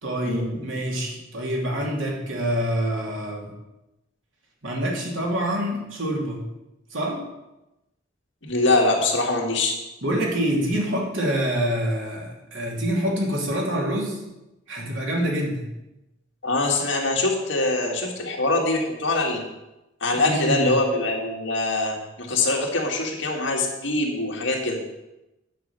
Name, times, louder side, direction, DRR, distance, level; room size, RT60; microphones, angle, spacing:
voice 1, 0.0-3.5 4.6-6.4 6.9-7.2 10.0-14.2 14.7-15.7 20.1-20.7, equal, 85° right, -1 dB, 2.8 m, -26 dB
voice 2, 8.4-9.7 16.4-19.4 20.0-24.8, left 2 dB, 70° left, 0 dB, 2.1 m, -23 dB
9.4 x 5.3 x 7.6 m, 0.96 s
head